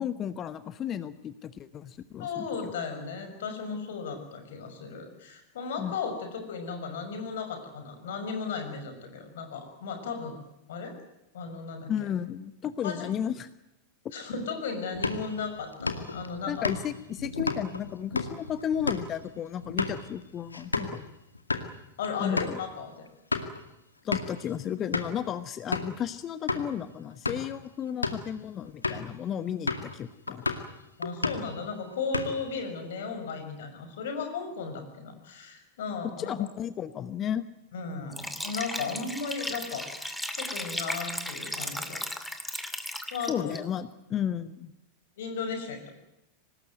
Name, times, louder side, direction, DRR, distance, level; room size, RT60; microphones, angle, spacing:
voice 1, 0.0-2.7 5.8-5.9 11.9-13.5 16.5-21.1 22.2-22.6 24.0-30.4 36.0-37.5 43.3-44.7, left 9 dB, 30° left, 14 dB, 1.1 m, -33 dB
voice 2, 2.2-10.4 10.7-11.0 11.3-11.9 12.8-13.1 14.1-16.7 22.0-23.1 31.0-36.5 37.7-42.0 43.1-43.6 45.2-45.9, left 5 dB, 60° left, 7 dB, 6.2 m, -35 dB
sound 1, 14.9-21.0 21.3-21.7 22.0-22.1 22.4-22.6 23.1-23.6 24.1-24.4 24.9-25.2 25.7-26.0 26.5-26.6 27.1-27.5 27.9-28.3 28.8-29.1 29.7-30.0 30.3-30.7 31.0-31.5 31.9-32.5, left 3 dB, 80° left, 2.2 m, -32 dB
Liquid, 38.1-43.6, left 1 dB, 5° left, 2.5 m, -35 dB
25.5 x 19.5 x 9.3 m, 0.90 s
figure-of-eight pair, 90°, 0 cm